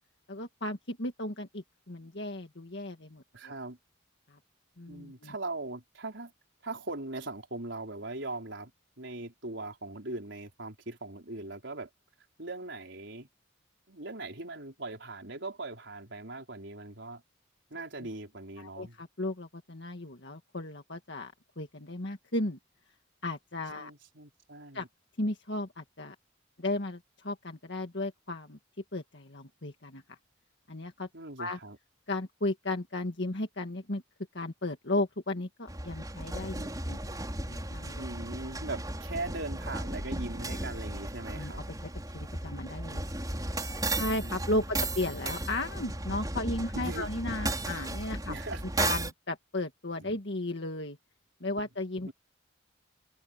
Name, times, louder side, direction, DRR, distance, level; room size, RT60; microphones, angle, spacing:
voice 1, 0.3-3.5 4.3-4.4 4.8-5.3 18.0-18.1 18.6-22.6 23.2-23.9 24.7-24.9 25.2-26.2 26.6-28.6 28.9-30.2 30.7-31.1 31.4-31.6 32.1-34.0 34.3-37.2 37.5-38.0 41.3-41.5 42.1-43.0 43.9-48.3 48.8-51.0 51.4-52.1, left 2 dB, 60° left, 1.9 m, -35 dB
voice 2, 3.3-3.8 4.9-6.3 6.6-8.7 9.0-11.9 12.4-13.3 13.9-17.2 17.7-19.0 23.7-24.9 31.1-31.8 38.0-41.7 44.1-44.6 46.7-47.1 48.3-48.6 50.0-50.1 52.1-52.2, right 2 dB, 60° right, 4.9 m, -40 dB
sound 1, 35.7-49.1, right 2 dB, 20° right, 5.2 m, -35 dB
head